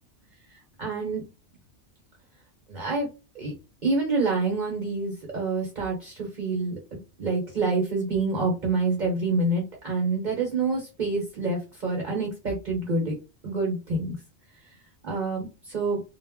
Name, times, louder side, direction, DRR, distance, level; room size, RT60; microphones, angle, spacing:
voice 1, 0.8-1.2 2.7-3.1 3.3-3.5 3.8-13.2 13.4-14.2 15.0-16.0, right 3 dB, 45° right, -1 dB, 0.9 m, -27 dB
2.1 x 2.0 x 3.4 m, 0.29 s
omnidirectional pair, 1.2 m